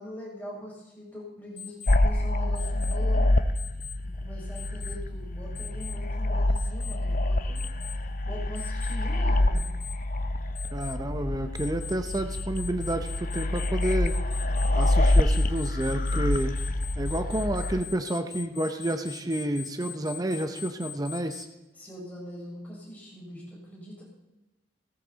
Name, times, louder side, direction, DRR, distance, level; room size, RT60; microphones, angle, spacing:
voice 1, 0.0-3.4 4.1-7.6 8.2-9.7 21.7-24.1, equal, 10° left, -5 dB, 5.8 m, -42 dB
Alarm, 1.6-1.9 2.5-2.9 3.5-3.9 4.5-4.9 5.5-5.9 6.5-6.9 7.5-7.9 8.5-8.9 9.5-9.9 10.5-10.9 11.5-21.4, left 8 dB, 65° left, 2.7 m, -41 dB
sound 1, 1.9-17.8, left 1 dB, 45° left, 0.8 m, -27 dB
voice 2, 10.7-14.1 14.7-16.5 17.0-21.5, right 1 dB, 20° right, 7 dB, 0.8 m, -30 dB
17.5 x 14.0 x 4.1 m, 1.0 s
head